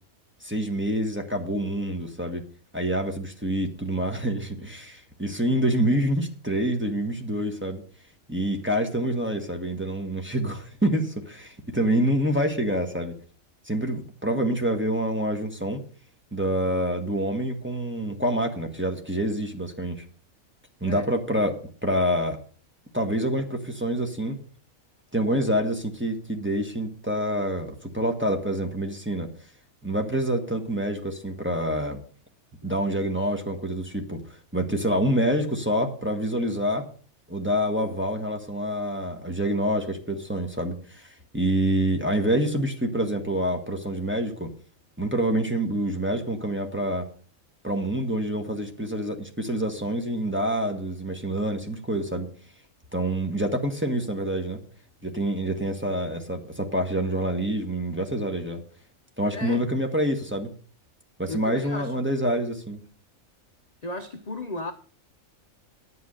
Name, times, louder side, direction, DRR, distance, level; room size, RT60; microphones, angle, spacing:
voice 1, 0.4-2.4 2.7-7.8 8.3-13.1 13.6-15.8 16.3-20.0 20.8-21.6 21.8-22.4 22.9-24.4 25.1-29.3 29.8-32.0 32.6-34.2 34.5-36.9 37.3-44.5 45.0-47.1 47.6-52.3 52.9-54.6 55.0-58.6 59.2-60.5 61.2-62.8, right 1 dB, 10° right, 1.4 m, -27 dB
voice 2, 59.3-59.6 61.3-61.9 63.8-64.7, left 2 dB, 35° left, 0.8 m, -35 dB
10.0 x 8.2 x 6.4 m
omnidirectional pair, 1.5 m